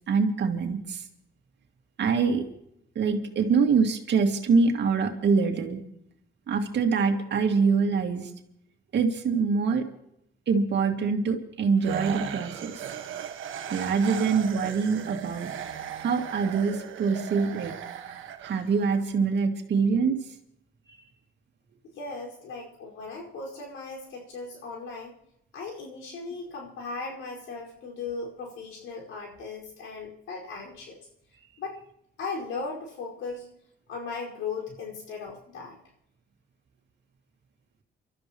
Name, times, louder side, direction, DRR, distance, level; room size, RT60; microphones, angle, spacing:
voice 1, 0.1-1.0 2.0-2.4 3.0-5.8 6.5-8.3 8.9-9.9 10.5-12.9 13.7-15.5 16.0-17.7 18.4-20.2, right 5 dB, 65° right, 4 dB, 2.2 m, -24 dB
sound 1, 11.8-19.0, right 9 dB, 80° right, 1.4 m, -37 dB
voice 2, 21.8-25.1 25.5-31.0 31.6-31.8 32.2-33.5 33.9-35.8, left 4 dB, 85° left, -1 dB, 5.1 m, -37 dB
28.5 x 13.0 x 3.1 m, 0.75 s
cardioid pair, 90°, 20 cm